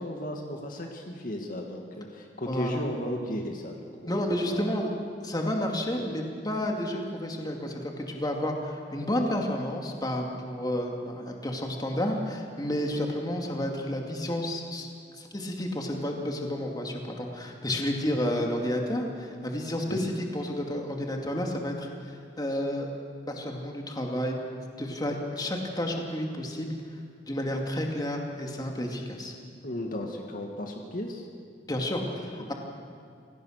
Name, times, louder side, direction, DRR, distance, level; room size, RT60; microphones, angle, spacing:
voice 1, 0.0-4.6 6.0-6.1 19.9-20.1 22.5-22.6 29.6-31.3, left 1 dB, 50° left, 2 dB, 2.0 m, -35 dB
voice 2, 2.5-2.8 4.1-4.9 5.2-14.9 15.1-22.9 23.3-24.4 24.8-26.7 27.3-29.3 31.7-32.5, left 1 dB, 25° left, 1 dB, 2.4 m, -31 dB
26.5 x 18.0 x 6.5 m, 2.3 s
head